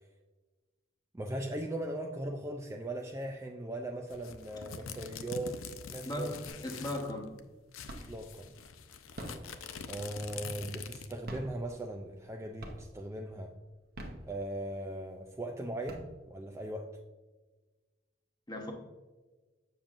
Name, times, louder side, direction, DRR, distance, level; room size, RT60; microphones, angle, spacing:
voice 1, 1.1-5.6 5.9-6.4 7.9-8.5 9.9-13.5 14.3-16.9, right 1 dB, 15° right, 3 dB, 0.3 m, -39 dB
sound 1, 4.1-7.1 7.4-7.5 7.7-11.3, left 6 dB, 85° left, 0.5 m, -45 dB
voice 2, 6.0-7.4 18.5-18.7, left 1 dB, 20° left, 1 dB, 1.0 m, -37 dB
sound 2, 6.5-7.0 7.3-8.3 9.0-10.7 11.2-12.3 12.6-13.2 13.8-14.8 15.3-15.4 15.7-16.6, right 1 dB, 50° right, 0.9 m, -45 dB
7.1 x 7.0 x 2.5 m, 1.2 s
head